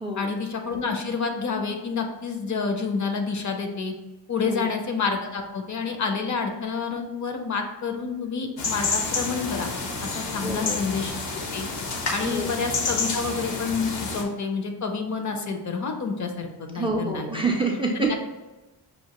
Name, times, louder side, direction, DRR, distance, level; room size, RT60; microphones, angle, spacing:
voice 1, 0.2-3.9 4.3-9.7 10.0-11.1 11.5-11.7 12.1-17.4 17.9-18.1, left 5 dB, 45° left, 5 dB, 0.5 m, -28 dB
sound 1, 8.6-14.2, left 4 dB, 80° left, 0.8 m, -29 dB
voice 2, 10.4-10.8 12.2-12.5 16.7-18.2, right 2 dB, 15° right, 1 dB, 0.3 m, -27 dB
5.6 x 2.5 x 2.9 m, 1.1 s
wide cardioid pair, 155°, 42 cm